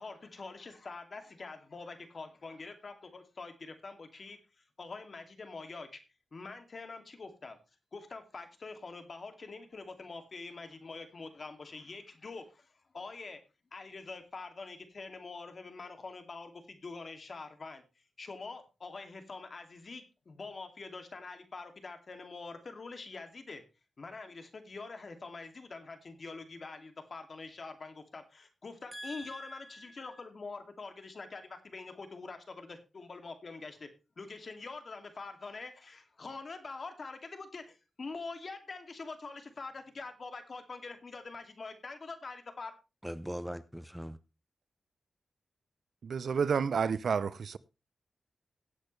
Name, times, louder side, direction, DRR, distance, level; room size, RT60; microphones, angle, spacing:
voice 1, 0.0-4.4 4.8-6.0 6.3-7.6 7.9-13.4 13.7-17.8 18.2-23.6 24.0-33.9 34.2-42.7, left 3 dB, 50° left, 2.4 m, -45 dB
voice 2, 28.9-30.0 43.0-44.2, equal, 5° right, 0.8 m, -42 dB
voice 3, 46.0-47.6, right 6 dB, 75° right, 0.6 m, -30 dB
17.0 x 8.2 x 3.2 m
cardioid pair, 75°, 0 cm